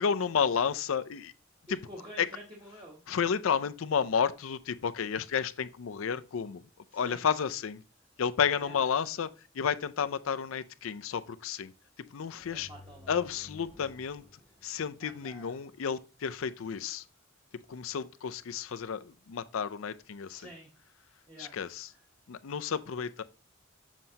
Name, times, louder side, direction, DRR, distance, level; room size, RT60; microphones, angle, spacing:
voice 1, 0.0-1.3 1.7-1.8 2.2-2.3 3.1-6.6 6.9-7.8 8.2-9.3 9.5-11.7 12.1-12.7 13.1-14.2 14.6-17.0 17.7-20.4 21.4-21.9 22.3-23.2, left 7 dB, 85° left, 0.5 m, -31 dB
voice 2, 1.7-3.0 6.9-7.3 8.6-8.8 12.4-13.1 15.0-15.5 20.3-20.7 21.3-21.6, right 1 dB, 25° right, 1.1 m, -48 dB
sound 1, 12.4-16.0, left 2 dB, 15° left, 0.8 m, -55 dB
7.4 x 5.3 x 2.8 m
head